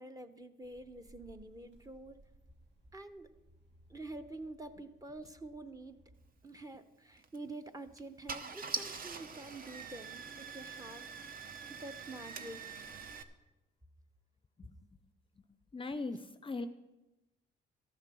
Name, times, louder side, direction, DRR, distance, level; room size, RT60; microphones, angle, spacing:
voice 1, 0.0-2.2 2.9-3.3 3.9-6.0 6.4-13.0, right 2 dB, 20° right, 8 dB, 0.8 m, -48 dB
sound 1, 0.6-6.3, right 1 dB, 65° right, 1.9 m, -63 dB
Car / Engine starting, 7.2-7.4 8.0-8.1 8.3-13.2, right 4 dB, 45° right, 0.8 m, -43 dB
voice 2, 15.7-16.7, left 3 dB, 25° left, 11 dB, 0.5 m, -40 dB
13.5 x 6.6 x 6.1 m, 1.0 s
cardioid pair, 90°, 20 cm